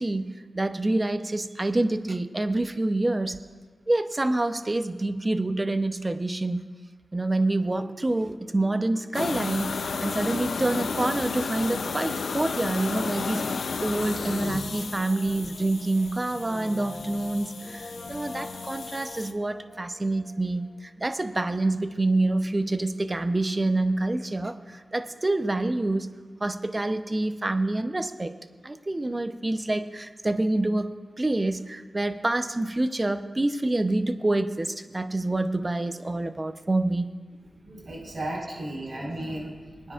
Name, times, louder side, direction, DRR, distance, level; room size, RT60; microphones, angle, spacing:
voice 1, 0.0-3.4 3.9-6.6 7.1-26.1 26.4-28.3 28.6-30.9 31.2-37.1, right 2 dB, 30° right, 9 dB, 0.7 m, -27 dB
sound 1, 9.1-19.3, left 4 dB, 85° left, 0.5 m, -33 dB
Brass instrument, 13.9-20.8 21.0-21.1, left 2 dB, 50° left, 1.3 m, -42 dB
voice 2, 37.5-39.9, right 1 dB, 65° right, -4 dB, 4.3 m, -35 dB
23.0 x 9.7 x 2.5 m, 1.4 s
cardioid pair, 50°, 0 cm